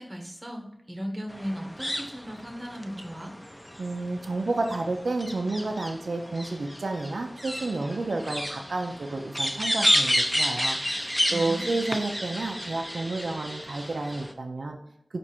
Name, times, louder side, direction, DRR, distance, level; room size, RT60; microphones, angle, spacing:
voice 1, 0.0-3.3 11.3-11.8, equal, 40° right, 2 dB, 1.0 m, -37 dB
sound 1, 1.3-14.3, equal, 10° left, 0.5 m, -31 dB
voice 2, 3.8-14.8, right 2 dB, 85° right, 4 dB, 0.4 m, -31 dB
4.6 x 2.5 x 4.2 m, 0.77 s
wide cardioid pair, 45°, 0 cm